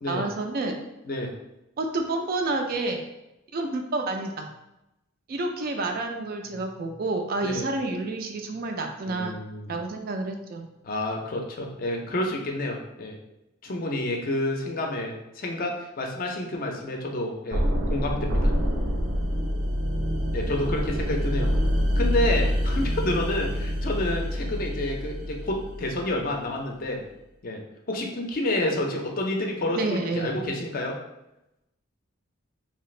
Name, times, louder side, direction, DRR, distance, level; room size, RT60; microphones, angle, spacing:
voice 1, 0.1-0.8 1.8-3.0 3.5-4.5 5.3-9.4 9.7-10.7 29.8-30.4, right 2 dB, 45° right, 4 dB, 0.3 m, -29 dB
voice 2, 9.0-9.8 10.8-13.2 13.6-18.5 20.3-21.5 21.9-27.0 27.4-27.6 27.9-31.0, left 1 dB, 45° left, 1 dB, 0.4 m, -29 dB
sound 1, 17.5-26.4, equal, 80° right, 0.6 m, -26 dB
2.8 x 2.4 x 3.1 m, 0.90 s
head